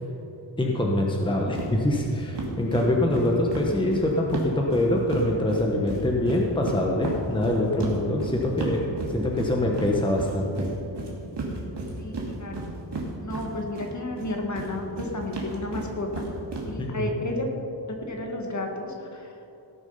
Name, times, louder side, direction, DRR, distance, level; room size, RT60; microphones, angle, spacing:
voice 1, 0.6-10.7 16.8-17.1, left 1 dB, 10° left, -1 dB, 1.1 m, -24 dB
sound 1, 1.5-1.7 1.9-2.1 2.3-5.2 5.5-13.9 14.2-16.7, right 3 dB, 65° right, 2.4 m, -33 dB
voice 2, 12.0-12.7 13.2-16.3 16.7-17.5 17.9-19.4, left 2 dB, 40° left, 1 dB, 1.8 m, -32 dB
18.0 x 7.1 x 5.6 m, 2.9 s
wide cardioid pair, 145°, 44 cm